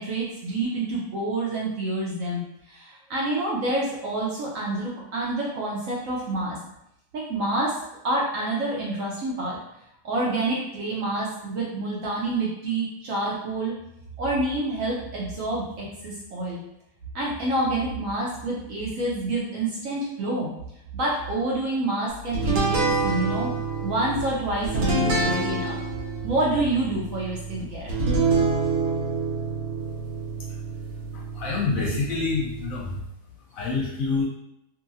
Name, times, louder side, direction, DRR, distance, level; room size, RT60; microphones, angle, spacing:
voice 1, 0.0-2.4 2.7-6.6 7.1-7.8 8.0-9.6 10.0-13.7 14.2-16.6 17.1-20.5 20.9-23.5 23.8-25.8 26.2-27.9, right 2 dB, 65° right, -4 dB, 0.9 m, -27 dB
sound 1, 22.3-33.0, right 3 dB, 80° right, 1.3 m, -27 dB
voice 2, 31.1-33.0 33.5-34.2, left 4 dB, 65° left, -3 dB, 0.9 m, -27 dB
2.8 x 2.7 x 2.5 m, 0.80 s
omnidirectional pair, 1.8 m